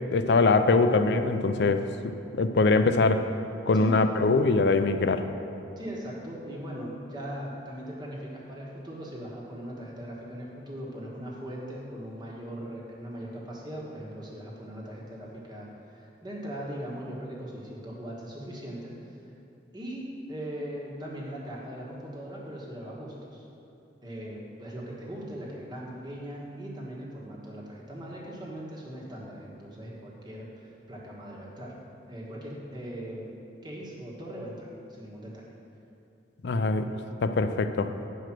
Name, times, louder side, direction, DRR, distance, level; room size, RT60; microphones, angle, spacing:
voice 1, 0.1-1.9 2.4-3.3 3.7-5.3 36.4-36.9 37.2-37.9, left 3 dB, 65° left, 9 dB, 0.5 m, -22 dB
voice 2, 5.8-15.7 15.9-18.9 19.7-23.4 24.0-31.7 32.1-33.3 33.6-35.4, equal, 25° right, -4 dB, 1.4 m, -39 dB
9.0 x 5.0 x 6.0 m, 2.8 s
head